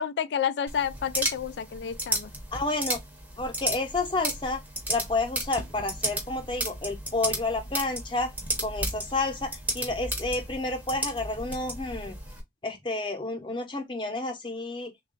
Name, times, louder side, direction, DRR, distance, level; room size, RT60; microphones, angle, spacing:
voice 1, 0.0-2.3, left 8 dB, 80° left, 0.3 m, -30 dB
sound 1, 0.7-12.4, right 1 dB, 10° right, 0.7 m, -34 dB
voice 2, 2.5-3.0 3.4-4.6 4.9-8.3 8.6-12.1 12.6-14.9, left 2 dB, 25° left, 0.8 m, -30 dB
3.4 x 2.3 x 3.7 m
head